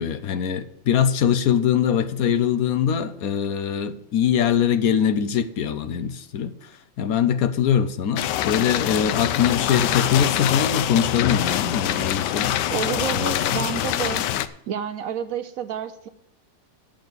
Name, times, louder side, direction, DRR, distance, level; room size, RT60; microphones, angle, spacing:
voice 1, 0.0-6.7 7.0-12.5 13.1-13.6, left 8 dB, 65° left, 1.1 m, -22 dB
sound 1, 8.2-14.5, left 12 dB, 85° left, 1.2 m, -24 dB
voice 2, 12.7-14.2 14.7-16.1, right 9 dB, 70° right, 0.9 m, -29 dB
8.7 x 6.5 x 8.0 m
omnidirectional pair, 1.8 m